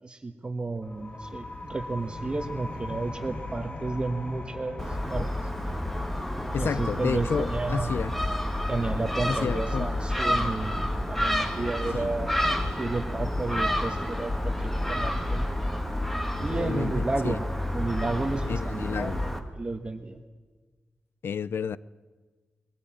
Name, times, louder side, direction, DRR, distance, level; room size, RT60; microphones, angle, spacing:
voice 1, 0.0-5.3 6.6-7.9 8.7-12.4 12.7-15.5 16.4-17.4 17.7-20.2, right 3 dB, 25° right, 1.3 m, -32 dB
sound 1, 0.8-12.2, left 2 dB, 30° left, 2.2 m, -42 dB
Gull seagull, 4.8-19.4, left 1 dB, 5° left, 1.7 m, -29 dB
voice 2, 6.5-8.1 9.3-9.9 11.9-12.1 16.6-17.4 18.5-19.2 21.2-21.8, left 6 dB, 70° left, 0.6 m, -31 dB
21.5 x 15.0 x 8.9 m
wide cardioid pair, 115°, 4 cm